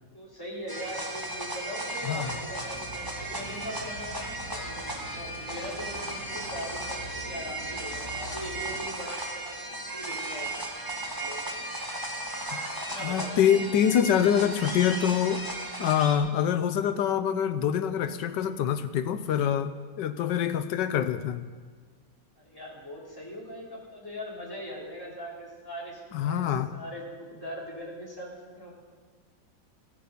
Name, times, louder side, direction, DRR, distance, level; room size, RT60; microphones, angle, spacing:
voice 1, 0.1-7.0 7.2-11.6 12.7-13.4 22.4-28.7, equal, 10° left, -5 dB, 3.8 m, -41 dB
sound 1, 0.7-16.2, right 1 dB, 15° right, 1.5 m, -36 dB
sound 2, 2.1-8.9, right 1 dB, 85° right, 2.9 m, -45 dB
voice 2, 12.5-15.4 15.8-21.4 26.1-26.7, left 9 dB, 80° left, 11 dB, 1.4 m, -25 dB
16.0 x 13.5 x 5.4 m, 1.5 s
omnidirectional pair, 1.9 m